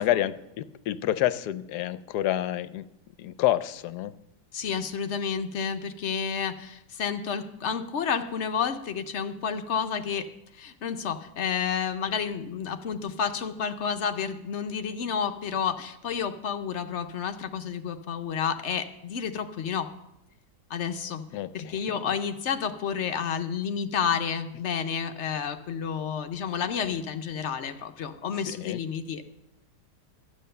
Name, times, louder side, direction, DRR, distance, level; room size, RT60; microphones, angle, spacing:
voice 1, 0.0-2.9 3.2-4.1 21.3-22.0 28.5-28.8, left 13 dB, 75° left, 14 dB, 1.1 m, -28 dB
voice 2, 4.5-10.3 10.5-19.9 20.7-21.2 21.5-29.2, left 7 dB, 60° left, 7 dB, 0.8 m, -30 dB
12.5 x 8.4 x 6.6 m, 0.89 s
omnidirectional pair, 1.8 m